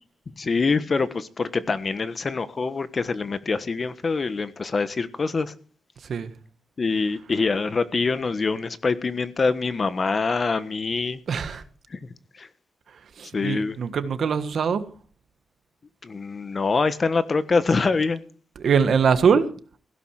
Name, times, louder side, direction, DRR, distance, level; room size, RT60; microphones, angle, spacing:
voice 1, 0.4-5.5 6.8-11.2 11.9-12.0 12.4-12.5 13.3-13.8 16.0-18.2, left 4 dB, 45° left, 1.3 m, -25 dB
voice 2, 6.0-6.3 11.3-11.6 12.9-14.8 18.5-19.5, right 6 dB, 65° right, 1.6 m, -23 dB
16.0 x 11.5 x 4.9 m
cardioid pair, 75°, 0 cm